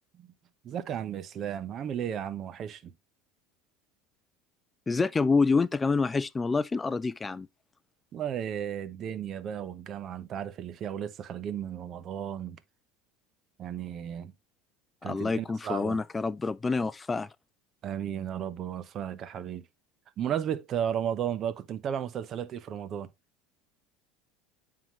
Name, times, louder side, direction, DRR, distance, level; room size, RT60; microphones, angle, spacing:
voice 1, 0.6-2.9 8.1-12.6 13.6-14.3 15.0-16.0 17.8-19.6 20.2-23.1, right 9 dB, 45° right, 0.8 m, -34 dB
voice 2, 4.9-7.5 15.0-17.3, left 4 dB, 20° left, 0.3 m, -27 dB
9.2 x 3.7 x 3.0 m
hypercardioid pair, 90°, 0 cm